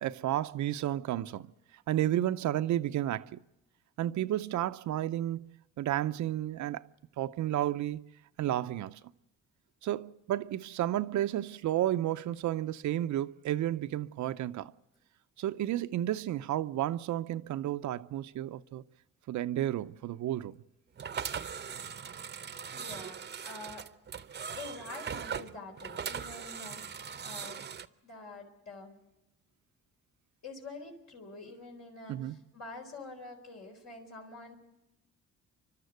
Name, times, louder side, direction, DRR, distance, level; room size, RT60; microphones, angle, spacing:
voice 1, 0.0-1.5 1.9-3.4 4.0-6.8 7.2-8.1 8.4-9.0 9.8-14.7 15.4-18.8 19.3-20.6 32.1-32.4, right 13 dB, 70° right, 0.6 m, -32 dB
sound 1, 21.0-27.9, right 7 dB, 35° right, 0.8 m, -40 dB
voice 2, 22.7-23.9 24.5-27.7 28.0-29.0 30.4-34.6, left 3 dB, 60° left, 4.3 m, -46 dB
30.0 x 12.5 x 8.1 m
cardioid pair, 90°, 30 cm